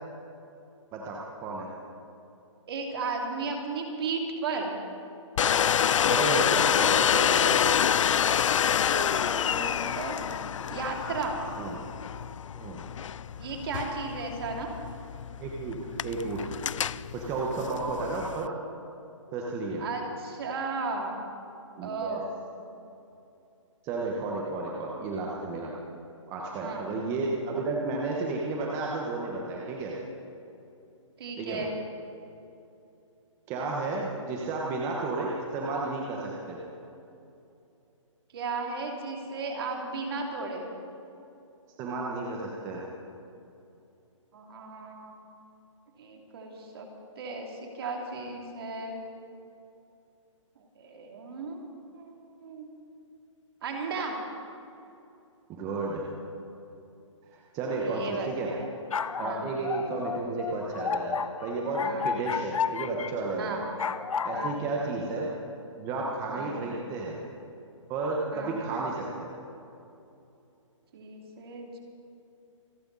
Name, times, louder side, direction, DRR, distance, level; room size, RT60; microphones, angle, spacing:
voice 1, 0.9-1.7 6.1-7.8 11.6-11.8 12.5-12.8 15.4-16.5 17.1-18.5 19.3-19.8 21.8-22.2 23.8-25.7 26.3-30.0 31.4-31.6 33.5-36.6 41.8-42.8 55.6-56.1 57.3-58.5 59.2-63.6 64.2-65.3 65.8-67.2 67.9-69.3, right 3 dB, 15° right, -2 dB, 1.3 m, -32 dB
voice 2, 2.7-4.7 8.9-10.4 10.7-11.4 13.4-14.7 19.8-21.2 21.8-22.3 26.6-26.9 31.2-31.7 38.3-40.7 44.3-45.2 46.0-46.9 47.2-49.0 50.8-51.6 51.9-52.7 53.6-54.2 57.8-58.7 59.2-59.5 61.8-62.1 63.4-63.6 64.3-64.6 66.3-66.6 68.3-68.6 70.9-71.8, right 4 dB, 45° right, 1 dB, 2.9 m, -35 dB
Domestic sounds home sounds, 5.4-18.5, left 9 dB, 70° left, 0.4 m, -27 dB
sound 1, 58.6-63.1 63.8-64.6, left 6 dB, 85° left, 0.9 m, -32 dB
27.0 x 11.5 x 4.2 m, 2.8 s
hypercardioid pair, 160°, 17 cm